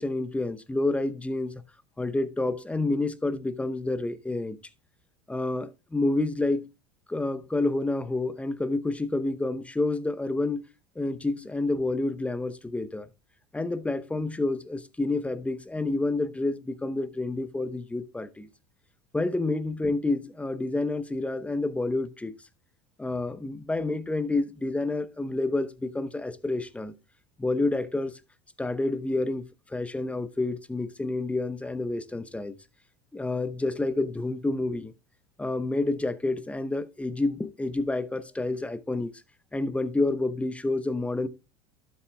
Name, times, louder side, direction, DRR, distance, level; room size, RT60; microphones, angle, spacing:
voice 1, 0.0-1.6 2.0-4.6 5.3-6.7 7.1-10.6 11.0-13.1 13.5-18.5 19.1-22.4 23.0-27.0 27.4-28.2 28.6-32.5 33.1-34.9 35.4-39.1 39.5-41.3, left 2 dB, 10° left, 0.8 m, -29 dB
12.0 x 7.4 x 2.3 m
hypercardioid pair, 85°, 15 cm